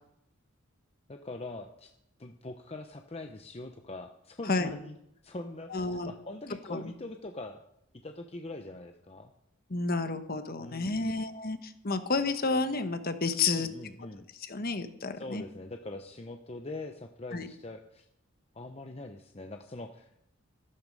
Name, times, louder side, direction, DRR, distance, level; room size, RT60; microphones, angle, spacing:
voice 1, 1.1-1.9 2.2-5.0 5.2-7.6 7.9-9.3 10.6-11.2 13.5-14.3 15.2-18.1 18.5-20.1, left 2 dB, 30° left, 5 dB, 0.8 m, -42 dB
voice 2, 5.7-6.1 6.7-6.9 9.7-13.7 14.5-15.4 17.3-17.5, left 3 dB, 45° left, 9 dB, 1.2 m, -30 dB
14.0 x 12.5 x 5.4 m, 0.77 s
head